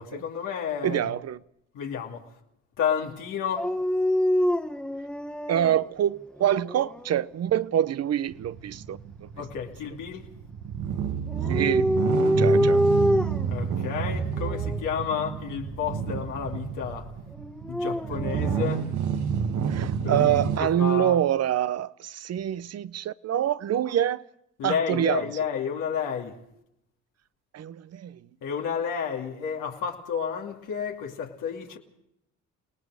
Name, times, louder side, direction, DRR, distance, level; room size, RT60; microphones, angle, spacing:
voice 1, 0.0-1.1 1.7-2.2 2.8-3.7 9.4-10.3 13.5-17.1 17.7-18.9 20.0-21.2 24.6-26.4 28.4-31.8, left 7 dB, 85° left, 2.7 m, -31 dB
voice 2, 0.8-1.4 5.5-9.3 11.5-11.9 12.4-12.8 19.7-24.2 24.6-25.2 27.5-28.2, right 11 dB, 55° right, 0.8 m, -26 dB
Dog, 3.6-5.8 6.4-7.2 11.3-13.6 14.4-14.8 17.4-18.7, equal, 5° left, 1.1 m, -25 dB
sound 1, 8.3-20.6, right 7 dB, 75° right, 1.8 m, -29 dB
29.0 x 18.5 x 4.9 m
cardioid pair, 90°, 30 cm